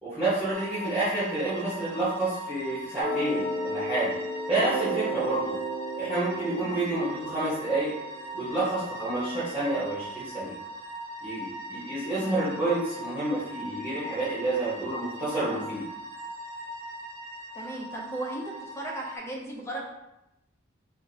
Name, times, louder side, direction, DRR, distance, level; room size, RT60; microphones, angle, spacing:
voice 1, 0.0-4.1 4.5-5.6 6.0-7.9 8.3-10.5 11.2-15.8, right 2 dB, 10° right, -14 dB, 1.3 m, -29 dB
sound 1, 0.5-19.2, right 1 dB, 75° right, 0.5 m, -40 dB
sound 2, 3.0-8.5, right 1 dB, 35° right, 1.0 m, -34 dB
voice 2, 17.5-18.4 18.8-19.8, right 1 dB, 15° left, -2 dB, 0.6 m, -36 dB
3.5 x 2.6 x 2.8 m, 0.90 s
head